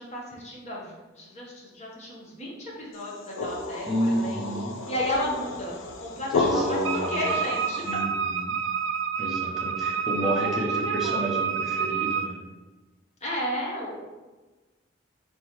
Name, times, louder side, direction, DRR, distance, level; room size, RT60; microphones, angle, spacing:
voice 1, 0.0-4.6 4.9-7.8 10.2-11.2 13.2-14.0, left 1 dB, 35° left, -4 dB, 1.1 m, -33 dB
sound 1, 3.0-8.0, left 3 dB, 80° left, 0.5 m, -31 dB
voice 2, 3.9-4.7 6.3-7.3 7.8-8.6 9.2-12.4, right 1 dB, ahead, -5 dB, 0.8 m, -30 dB
Wind instrument woodwind instrument, 6.8-12.3, right 6 dB, 85° right, 0.4 m, -28 dB
4.1 x 4.1 x 3.1 m, 1.2 s
head